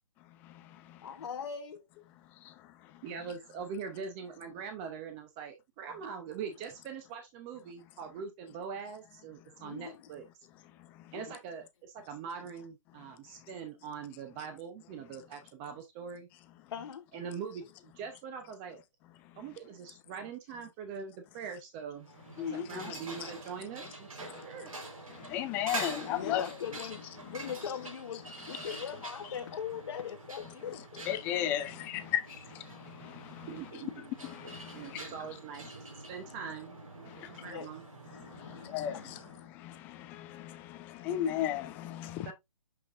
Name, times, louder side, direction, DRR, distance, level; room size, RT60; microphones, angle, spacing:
voice 1, 1.0-1.8 9.6-9.9 11.1-11.4 16.7-17.1 22.4-22.6 26.0-31.0 31.9-32.1 37.4-37.7 38.4-39.1, left 8 dB, 55° left, 1.0 m, -41 dB
voice 2, 3.0-10.2 11.1-16.3 17.1-18.8 19.3-22.1 22.4-24.8 33.5-33.9 34.7-37.8 42.2-42.3, right 6 dB, 20° right, 0.8 m, -43 dB
sound 1, 22.0-39.4, right 2 dB, 80° right, 4.4 m, -46 dB
voice 3, 25.3-26.4 31.1-31.6 38.7-38.9 41.1-41.6, left 11 dB, 10° left, 0.4 m, -31 dB
7.6 x 5.4 x 2.5 m
hypercardioid pair, 155°, 17 cm